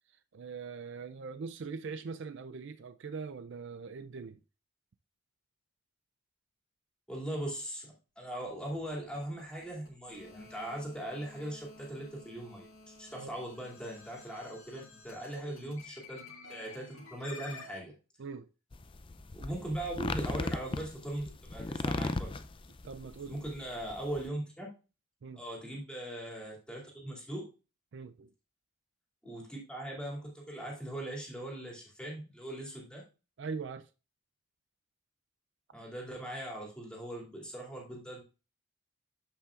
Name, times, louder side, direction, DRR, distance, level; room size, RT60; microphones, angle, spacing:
voice 1, 0.3-4.4 13.1-13.4 15.3-15.8 18.2-18.5 22.8-23.4 25.2-25.4 27.9-28.3 33.4-33.9, right 5 dB, 60° right, 0.4 m, -42 dB
voice 2, 7.1-16.2 16.5-17.9 19.3-22.3 23.3-24.7 25.4-27.5 29.2-33.0 35.7-38.2, right 1 dB, 5° left, 2.6 m, -40 dB
sound 1, 8.2-17.8, left 3 dB, 80° left, 1.9 m, -52 dB
sound 2, 18.7-24.3, left 2 dB, 25° left, 0.4 m, -36 dB
12.5 x 5.6 x 2.4 m
head